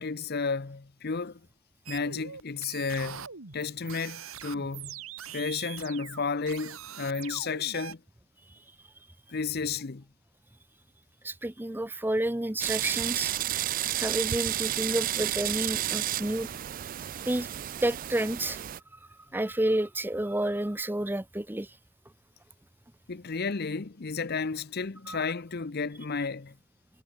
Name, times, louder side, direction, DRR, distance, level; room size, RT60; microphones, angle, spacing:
voice 1, 0.0-1.4 1.9-3.2 3.5-5.0 5.3-8.0 9.3-10.0 23.1-26.5, left 4 dB, 45° left, 0.7 m, -32 dB
sound 1, 1.9-7.9, right 8 dB, 70° right, 1.8 m, -42 dB
voice 2, 11.2-13.3 14.0-16.5 17.3-17.5 17.8-18.6 19.3-21.7 25.1-25.2, right 1 dB, 10° right, 0.7 m, -30 dB
sound 2, 12.6-18.8, right 13 dB, 40° right, 0.3 m, -31 dB
head